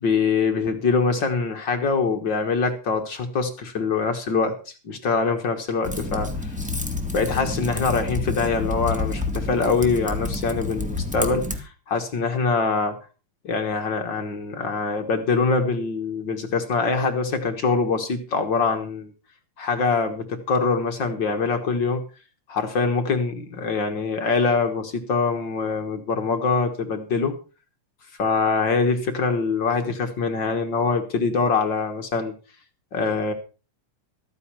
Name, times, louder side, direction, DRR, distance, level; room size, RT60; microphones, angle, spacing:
voice 1, 0.0-6.3 7.1-12.9 13.4-19.1 19.6-22.0 22.5-27.4 28.2-32.3 32.9-33.3, left 4 dB, 50° left, 6 dB, 1.5 m, -24 dB
Typing, 5.8-11.6, left 3 dB, 5° right, 1.1 m, -29 dB
14.0 x 9.5 x 5.7 m, 0.34 s
omnidirectional pair, 3.8 m